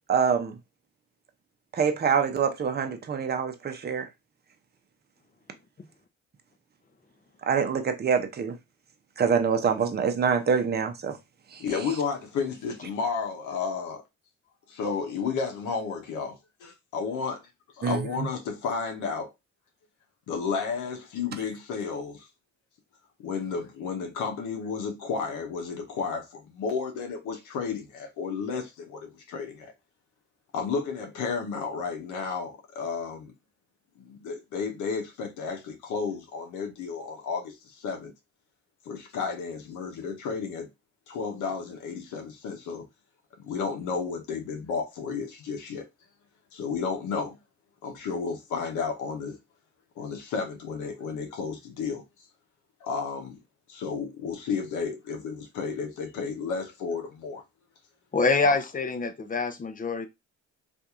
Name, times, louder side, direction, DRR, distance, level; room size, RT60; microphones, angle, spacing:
voice 1, 0.1-0.6 1.7-4.1 7.5-8.6 9.2-11.2 11.5-11.6 17.8-18.3, right 6 dB, 35° right, 0.7 m, -25 dB
voice 2, 11.6-14.0 14.7-17.4 17.7-19.3 20.3-22.3 23.2-29.7 30.5-33.3 34.0-38.1 38.8-40.7 41.1-42.8 43.4-45.8 46.5-47.4 47.8-49.4 50.0-52.0 52.8-53.4 53.7-57.4 58.4-58.6, left 5 dB, 90° left, 0.8 m, -32 dB
voice 3, 58.1-60.1, left 3 dB, 30° left, 0.6 m, -25 dB
2.8 x 2.6 x 3.5 m
cardioid pair, 90°, 30 cm